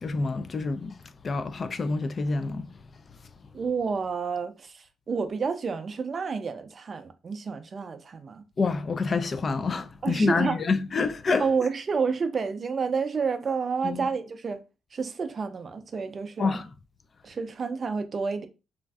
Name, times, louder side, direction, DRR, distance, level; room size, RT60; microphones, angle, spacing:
voice 1, 0.0-1.0 1.2-2.7 8.6-11.5 13.8-14.1 16.4-16.7, left 4 dB, 40° left, 0.3 m, -27 dB
voice 2, 3.5-8.4 10.0-10.6 11.4-14.6 14.9-16.6 17.2-18.5, right 5 dB, 40° right, 0.4 m, -29 dB
3.1 x 2.5 x 2.3 m
cardioid pair, 90°, 0 cm